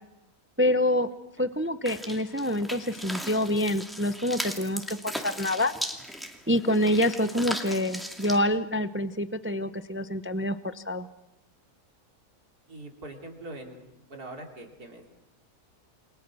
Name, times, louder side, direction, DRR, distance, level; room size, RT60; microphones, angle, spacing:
voice 1, 0.6-1.1 1.4-5.7 6.5-11.1, left 1 dB, 15° right, 12 dB, 0.4 m, -26 dB
sound 1, 1.9-8.4, equal, ahead, 2.3 m, -37 dB
voice 2, 12.7-13.8 14.1-15.1, right 2 dB, 75° right, 2 dB, 3.8 m, -42 dB
29.0 x 22.5 x 6.3 m, 0.94 s
omnidirectional pair, 1.6 m